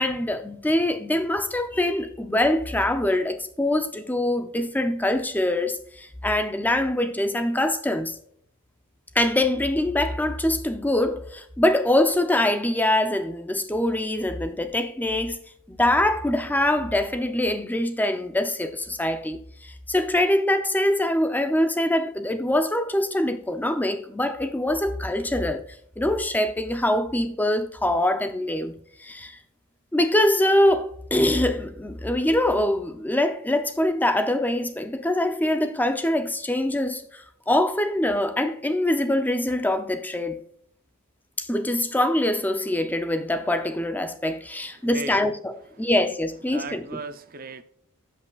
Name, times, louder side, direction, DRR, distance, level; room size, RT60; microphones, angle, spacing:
voice 1, 0.0-8.2 9.1-15.4 15.7-25.6 26.0-29.4 29.9-40.4 41.4-47.0, left 1 dB, 10° left, 0.5 m, -24 dB
voice 2, 44.8-45.2 46.5-47.6, right 3 dB, 40° right, 0.7 m, -36 dB
15.5 x 5.5 x 2.4 m
head